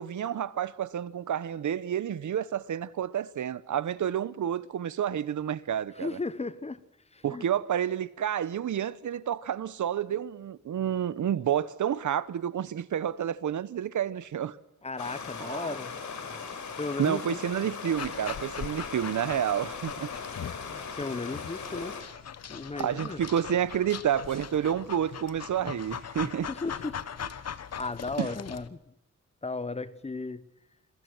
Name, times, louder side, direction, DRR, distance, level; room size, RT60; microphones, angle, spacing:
voice 1, 0.0-6.1 7.2-14.6 15.4-15.8 17.0-20.1 21.7-21.8 22.8-26.5 28.2-28.3, right 9 dB, 80° right, 1.0 m, -30 dB
voice 2, 5.9-6.8 7.1-7.5 14.8-16.0 16.3-16.4 16.8-17.4 20.7-22.0 22.5-23.2 26.5-27.3 27.8-28.8 29.4-30.5, left 3 dB, 20° left, 1.0 m, -35 dB
Stream, 15.0-22.0, left 5 dB, 80° left, 4.6 m, -39 dB
Dog, 18.0-28.7, left 8 dB, 60° left, 1.3 m, -41 dB
28.5 x 22.5 x 6.2 m
wide cardioid pair, 175°, 29 cm